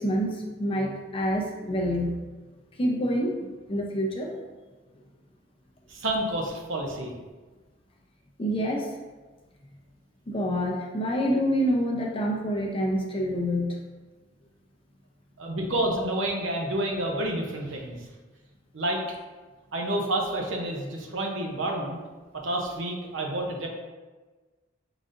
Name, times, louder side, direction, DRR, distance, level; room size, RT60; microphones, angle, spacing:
voice 1, 0.0-2.2 2.8-4.3 8.4-8.9 10.3-13.8, equal, 30° left, -1 dB, 0.6 m, -27 dB
voice 2, 5.9-7.1 15.4-18.0 18.7-19.0 19.7-22.0 22.3-23.7, right 1 dB, 80° right, 1 dB, 0.8 m, -29 dB
4.9 x 4.0 x 2.6 m, 1.3 s
head